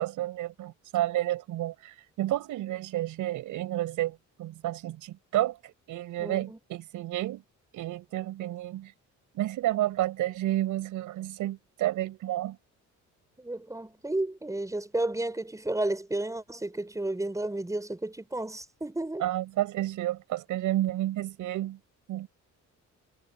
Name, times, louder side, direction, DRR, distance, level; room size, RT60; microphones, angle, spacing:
voice 1, 0.0-7.4 7.7-8.9 9.3-12.6 19.2-21.8 22.1-22.3, right 14 dB, 85° right, 5.5 m, -31 dB
voice 2, 6.2-6.6 13.4-19.2, right 2 dB, 10° right, 5.1 m, -32 dB
cardioid pair, 90°, 30 cm